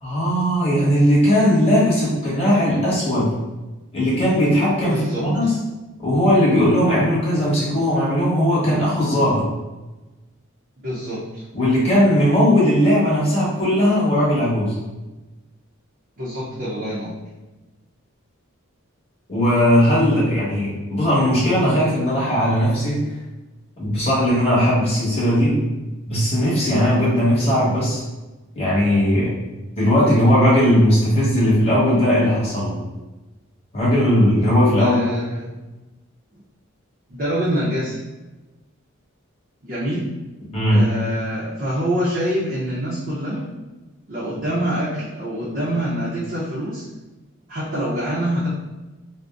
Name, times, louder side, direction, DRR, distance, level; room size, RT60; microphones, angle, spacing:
voice 1, 0.0-3.3 3.9-5.5 6.0-9.4 11.5-14.7 19.3-23.0 23.8-25.5 26.1-28.0 28.5-29.3 29.8-32.8 33.7-35.0 40.5-40.8, equal, 30° left, -7 dB, 1.0 m, -18 dB
voice 2, 4.9-5.5 10.8-11.4 16.2-17.2 34.8-35.6 37.1-38.0 39.6-40.0 40.7-43.5 44.1-46.8 47.5-48.5, equal, 45° right, -9 dB, 0.6 m, -25 dB
2.5 x 2.1 x 3.4 m, 1.1 s
head